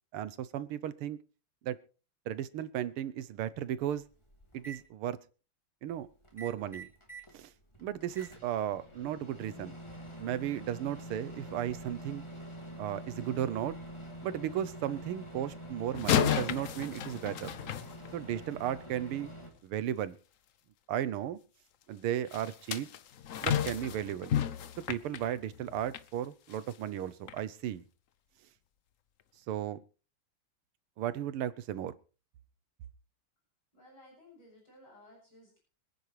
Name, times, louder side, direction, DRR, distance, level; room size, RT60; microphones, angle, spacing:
voice 1, 0.1-1.2 1.6-1.8 2.3-4.1 4.5-5.2 5.8-6.1 6.3-6.9 7.3-7.5 7.8-9.8 10.2-12.2 12.8-13.8 14.2-17.5 18.1-19.3 19.6-20.2 20.9-21.4 21.9-22.9 23.4-24.3 24.9-27.8 29.5-29.8 31.0-31.9, right 11 dB, 85° right, 15 dB, 1.8 m, -35 dB
Microwave oven, 3.3-3.4 3.8-4.8 6.2-7.3 7.7-19.5, right 1 dB, 15° left, 3.3 m, -46 dB
sound 1, 15.9-18.5 22.3-26.1 26.5-26.7 27.3-27.4, left 9 dB, 70° left, 0.7 m, -32 dB
voice 2, 33.7-35.6, left 1 dB, 50° left, -3 dB, 8.2 m, -57 dB
26.0 x 9.7 x 3.3 m, 0.37 s
omnidirectional pair, 2.4 m